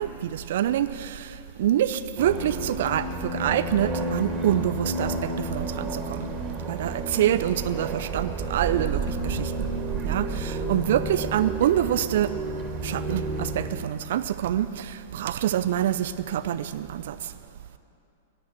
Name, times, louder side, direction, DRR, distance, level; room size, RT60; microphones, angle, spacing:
voice 1, 0.0-6.2 6.7-9.5 10.0-12.3 12.8-17.2, right 11 dB, 60° right, 13 dB, 0.5 m, -26 dB
sound 1, 2.2-13.7, right 2 dB, 25° right, 2.6 m, -31 dB
18.0 x 10.5 x 7.0 m, 2.7 s
figure-of-eight pair, 100°, 0 cm